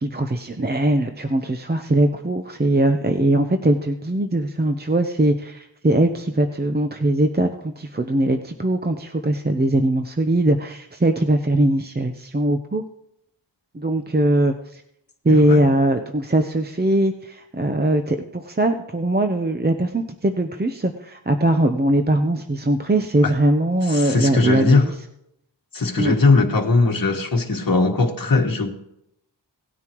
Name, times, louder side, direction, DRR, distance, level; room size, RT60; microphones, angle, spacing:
voice 1, 0.0-12.8 13.7-14.8 15.2-24.9 26.0-26.1, right 1 dB, 20° right, 6 dB, 0.8 m, -21 dB
voice 2, 15.3-15.7 23.9-24.9 25.7-28.7, left 3 dB, 50° left, 2 dB, 1.6 m, -19 dB
18.0 x 9.5 x 3.1 m, 0.79 s
wide cardioid pair, 50°, 44 cm